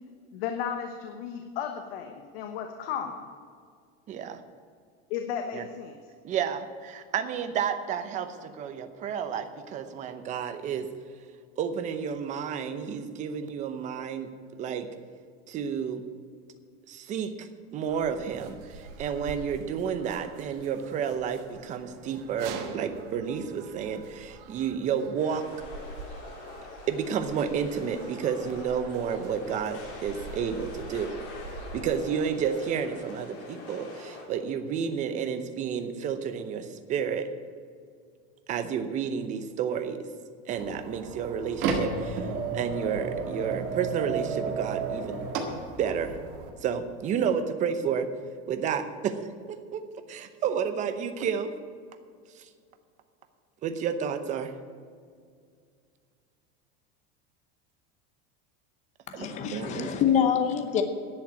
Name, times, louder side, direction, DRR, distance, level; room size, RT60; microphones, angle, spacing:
voice 1, 0.3-3.2 5.1-5.9, left 8 dB, 75° left, 4 dB, 1.2 m, -34 dB
voice 2, 4.1-4.4 5.5-5.6 6.2-10.9 11.6-14.9 15.5-16.0 16.9-25.5 26.9-31.1 31.7-37.3 38.5-40.1 40.5-42.3 42.5-45.3 45.8-46.2 46.6-48.1 48.5-49.2 49.5-49.8 50.1-51.5 52.4-52.5 53.6-54.5 59.1-60.2, right 7 dB, 25° right, 9 dB, 0.7 m, -31 dB
sound 1, 17.9-31.9, right 4 dB, 70° right, 1.6 m, -45 dB
sound 2, 25.2-34.2, left 3 dB, 50° left, 3.2 m, -44 dB
sound 3, 40.5-46.5, right 4 dB, 50° right, 1.8 m, -32 dB
voice 3, 59.1-60.8, left 8 dB, 25° left, 7 dB, 0.8 m, -25 dB
10.5 x 7.7 x 9.2 m, 2.2 s
cardioid pair, 180°, 30 cm